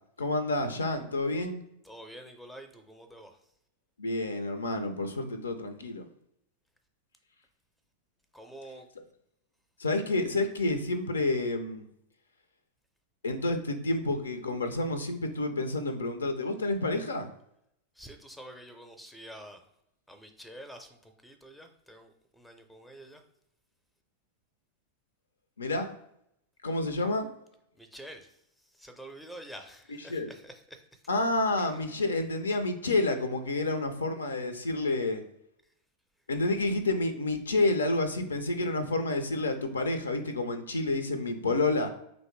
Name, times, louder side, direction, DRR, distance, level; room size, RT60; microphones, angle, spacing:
voice 1, 0.2-1.6 4.0-6.1 9.8-11.9 13.2-17.3 25.6-26.0 26.6-27.3 29.9-30.3 31.1-35.2 36.3-41.9, left 2 dB, 75° left, 8 dB, 0.4 m, -29 dB
voice 2, 1.9-3.4 8.3-8.9 18.0-19.6 20.1-23.2 27.8-28.3 28.7-31.0, right 1 dB, ahead, 6 dB, 0.5 m, -48 dB
3.0 x 2.6 x 3.1 m, 0.77 s
figure-of-eight pair, 90°, 0 cm